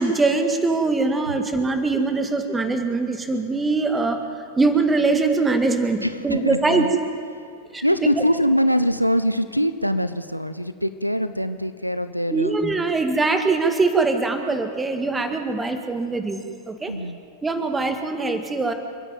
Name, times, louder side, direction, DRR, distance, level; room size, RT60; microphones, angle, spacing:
voice 1, 0.0-4.2 4.6-6.9 7.7-8.2 12.3-16.4 16.7-16.9 17.4-18.7, right 3 dB, 15° right, 7 dB, 1.8 m, -22 dB
voice 2, 6.0-6.9 7.8-12.5 16.9-17.2, equal, 90° right, 13 dB, 0.6 m, -23 dB
30.0 x 10.0 x 9.2 m, 2.3 s
figure-of-eight pair, 90°, 0 cm